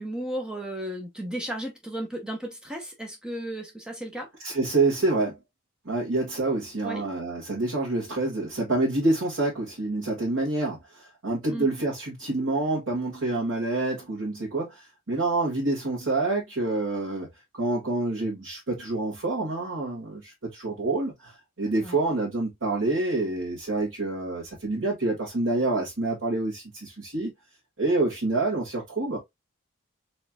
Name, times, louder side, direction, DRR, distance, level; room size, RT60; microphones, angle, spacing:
voice 1, 0.0-4.3 6.8-7.1 11.5-11.7 21.8-22.0, right 1 dB, 5° right, 0.9 m, -34 dB
voice 2, 4.4-5.4 5.8-17.3 17.5-27.3 27.8-29.2, right 2 dB, 75° right, 1.7 m, -27 dB
4.3 x 3.1 x 2.3 m
head